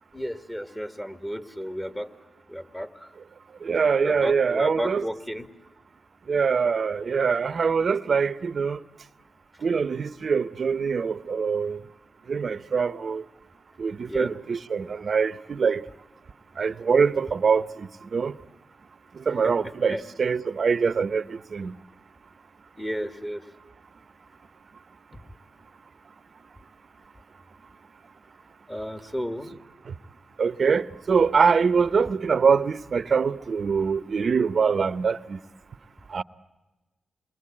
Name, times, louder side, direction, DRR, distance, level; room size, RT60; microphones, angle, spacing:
voice 1, 0.1-2.1 2.5-3.1 4.0-5.5 14.1-14.3 19.4-19.5 19.9-20.0 22.8-23.4 28.7-29.5, equal, 15° left, 2.0 m, -33 dB
voice 2, 3.6-5.1 6.3-8.8 9.6-11.8 12.3-13.2 13.8-15.8 16.6-18.3 19.3-21.7 30.4-35.4 36.1-36.2, right 5 dB, 60° right, 0.8 m, -24 dB
27.5 x 22.0 x 8.6 m
cardioid pair, 50°, 0 cm